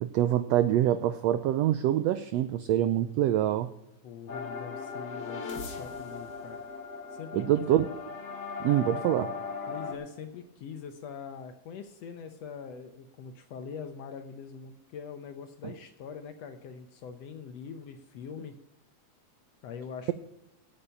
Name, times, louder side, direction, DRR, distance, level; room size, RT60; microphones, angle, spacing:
voice 1, 0.0-3.7 7.3-7.9 8.6-9.4, right 12 dB, 90° right, 12 dB, 1.4 m, -25 dB
voice 2, 4.0-6.6 7.1-7.7 9.7-18.6 19.6-20.1, left 6 dB, 70° left, 8 dB, 1.6 m, -43 dB
sound 1, 4.3-9.9, left 5 dB, 45° left, 1.6 m, -38 dB
9.0 x 8.3 x 8.8 m, 0.88 s
omnidirectional pair, 3.6 m